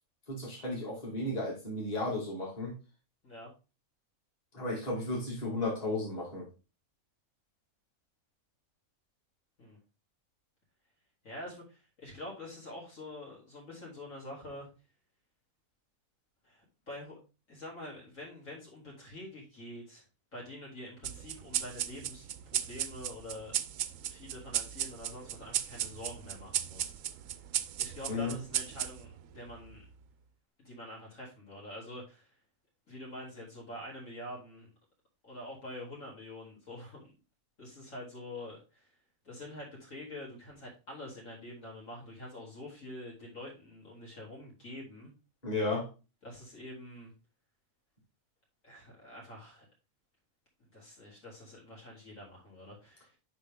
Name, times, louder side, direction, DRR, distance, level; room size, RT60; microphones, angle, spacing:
voice 1, 0.3-2.7 4.5-6.5 28.1-28.3 45.4-45.9, left 2 dB, 25° left, -4 dB, 2.3 m, -34 dB
voice 2, 11.2-14.7 16.4-17.2 17.5-20.0 20.3-22.3 22.5-23.6 24.0-26.9 27.8-29.8 30.6-32.3 32.9-34.7 35.2-37.2 37.6-38.9 39.2-45.1 46.2-47.1 48.6-49.6 50.6-53.2, left 1 dB, 60° left, -4 dB, 3.1 m, -46 dB
sound 1, 21.0-29.9, right 11 dB, 70° right, 0.9 m, -36 dB
7.5 x 5.2 x 3.6 m, 0.31 s
omnidirectional pair, 1.6 m